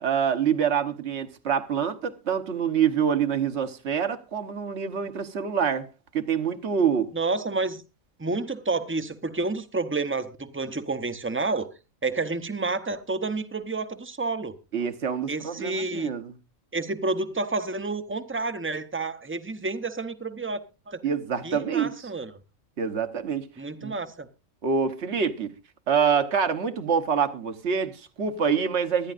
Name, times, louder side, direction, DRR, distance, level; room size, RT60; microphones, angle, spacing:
voice 1, 0.0-5.9 6.1-7.1 14.7-16.3 21.0-22.1 22.8-23.5 23.8-23.9 24.6-25.5 25.9-29.1, right 7 dB, 65° right, 1.3 m, -26 dB
voice 2, 7.1-7.8 8.2-11.7 12.0-14.5 15.3-16.1 16.7-20.6 20.9-21.0 21.4-22.3 23.6-24.3, right 3 dB, 15° right, 0.6 m, -29 dB
24.0 x 10.0 x 2.5 m
omnidirectional pair, 1.3 m